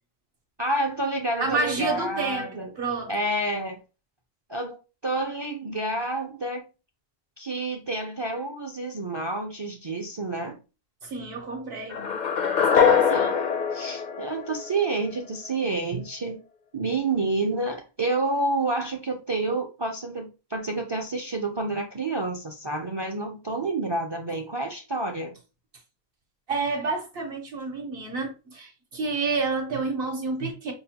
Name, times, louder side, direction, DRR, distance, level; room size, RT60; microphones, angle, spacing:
voice 1, 0.6-2.7 3.1-3.8 4.5-4.8 5.0-6.6 7.4-10.6 13.1-13.4 13.7-16.4 16.7-25.3, right 2 dB, 35° right, 0.4 m, -29 dB
voice 2, 1.4-3.1 11.0-12.2 12.6-13.3 15.9-16.0 26.5-30.7, right 3 dB, 65° right, 1.0 m, -29 dB
sound 1, 11.9-15.0, left 7 dB, 55° left, 0.5 m, -23 dB
5.3 x 2.1 x 2.8 m
omnidirectional pair, 1.1 m